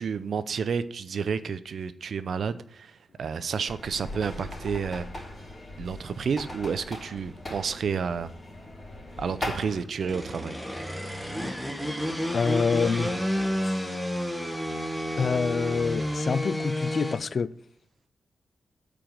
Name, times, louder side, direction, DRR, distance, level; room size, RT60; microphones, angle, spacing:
voice 1, 0.0-5.1 5.8-8.3 9.2-10.8, right 6 dB, 60° right, 0.5 m, -30 dB
sound 1, 3.7-9.8, left 1 dB, 25° left, 3.8 m, -39 dB
sound 2, 10.0-17.2, equal, ahead, 1.3 m, -30 dB
voice 2, 12.3-13.2 13.6-13.8 15.2-17.5, left 5 dB, 45° left, 0.4 m, -26 dB
8.7 x 5.0 x 7.6 m
wide cardioid pair, 165°, 0 cm